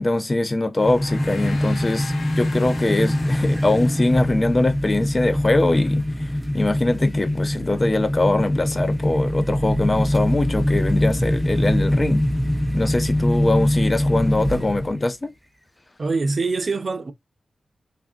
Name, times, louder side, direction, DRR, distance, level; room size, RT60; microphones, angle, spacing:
voice 1, 0.0-6.1 6.5-12.2 12.7-15.3, left 2 dB, 35° left, 0.5 m, -22 dB
Gong, 0.7-5.4, left 4 dB, 80° left, 0.7 m, -40 dB
sound 1, 0.8-15.1, left 1 dB, ahead, 0.7 m, -23 dB
voice 2, 16.0-17.1, right 3 dB, 55° right, 0.5 m, -24 dB
3.4 x 2.6 x 2.4 m
cardioid pair, 55°, 0 cm